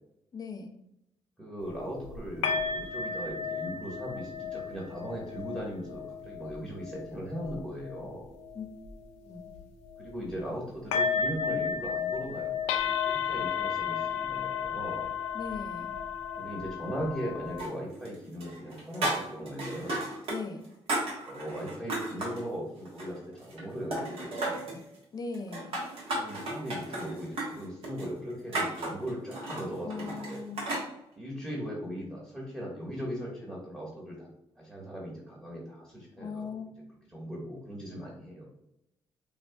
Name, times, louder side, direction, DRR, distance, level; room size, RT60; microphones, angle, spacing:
voice 1, 0.3-0.7 8.5-9.0 9.3-9.5 15.3-16.0 20.3-20.6 25.1-25.8 29.8-30.7 36.2-36.7, left 4 dB, 40° left, 6 dB, 0.6 m, -39 dB
voice 2, 1.4-8.3 10.0-15.1 16.3-20.1 21.3-24.8 26.2-30.4 31.2-34.3 34.6-36.5 37.1-38.5, equal, 15° right, -4 dB, 1.2 m, -39 dB
sound 1, 1.6-10.6 10.9-17.7, left 6 dB, 85° left, 0.4 m, -34 dB
sound 2, 17.6-18.1 18.4-20.4 20.6-22.4 22.8-23.6 23.9-24.8 25.3-30.9, right 2 dB, 65° right, 1.3 m, -34 dB
5.1 x 2.4 x 2.2 m, 0.84 s
cardioid pair, 75°, 11 cm